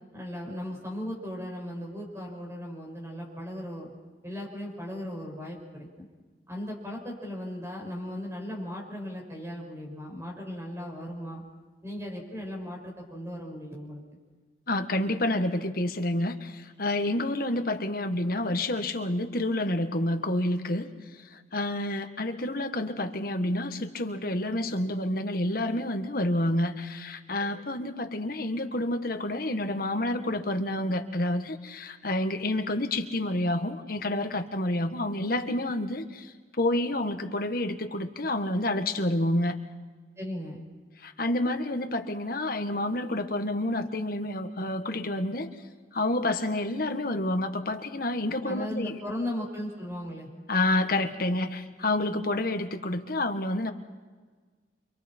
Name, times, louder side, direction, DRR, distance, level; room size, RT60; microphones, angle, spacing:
voice 1, 0.1-3.9 4.2-6.1 6.5-11.4 11.8-14.0 40.2-40.6 48.5-50.3, equal, 15° right, -1 dB, 6.4 m, -37 dB
voice 2, 14.7-20.9 21.3-39.6 41.0-45.5 45.9-49.0 50.5-53.7, left 1 dB, 55° left, 7 dB, 1.6 m, -29 dB
29.5 x 25.5 x 4.5 m, 1.4 s
head